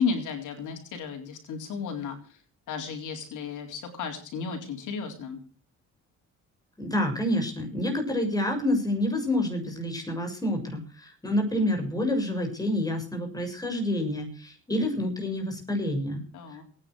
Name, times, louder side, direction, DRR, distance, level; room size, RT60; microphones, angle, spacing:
voice 1, 0.0-2.4 2.7-5.4 16.3-16.6, left 5 dB, 80° left, 4 dB, 4.0 m, -33 dB
voice 2, 6.8-16.2 16.5-16.6, left 1 dB, 10° left, 3 dB, 6.8 m, -28 dB
20.0 x 10.0 x 6.4 m, 0.40 s
cardioid pair, 90°, 30 cm